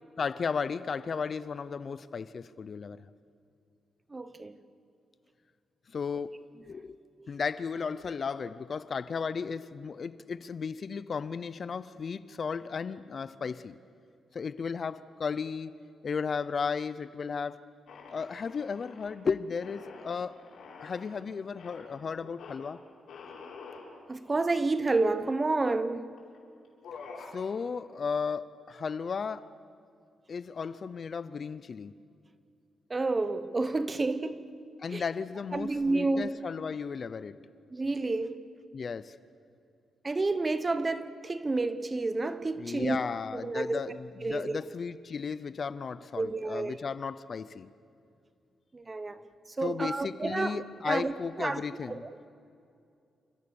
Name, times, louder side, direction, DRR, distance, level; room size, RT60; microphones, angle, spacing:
voice 1, 0.2-3.0 5.9-6.9 7.3-13.8 14.3-15.8 16.0-17.6 18.1-20.4 20.8-22.8 27.2-29.5 30.3-31.9 34.8-37.4 38.7-39.2 42.6-47.7 49.6-52.0, left 5 dB, 35° left, 0.5 m, -34 dB
voice 2, 4.1-4.6 7.2-7.3 24.1-26.2 32.9-34.5 34.9-35.0 35.5-36.4 37.7-38.4 40.0-43.0 43.3-43.8 44.2-44.6 46.2-46.8 48.7-49.3 49.6-50.6 50.8-51.6 51.9-52.3, right 3 dB, 20° right, 0.9 m, -30 dB
sound 1, 17.9-19.1 19.6-21.1 21.6-21.9 22.4-22.6 23.1-23.9 24.5-24.6 24.8-25.6 26.2-26.4 26.6-27.4, left 5 dB, 70° left, 6.4 m, -47 dB
29.0 x 26.5 x 6.9 m
wide cardioid pair, 175°, 0 cm